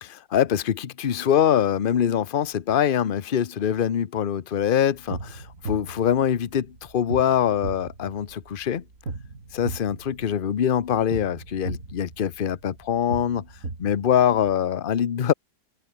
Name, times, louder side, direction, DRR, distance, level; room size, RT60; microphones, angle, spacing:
voice 1, 0.0-8.8 9.5-13.5 13.8-15.3, left 9 dB, 45° left, 0.7 m, -23 dB
sound 1, 5.0-14.6, right 3 dB, 45° right, 3.8 m, -38 dB
omnidirectional pair, 1.9 m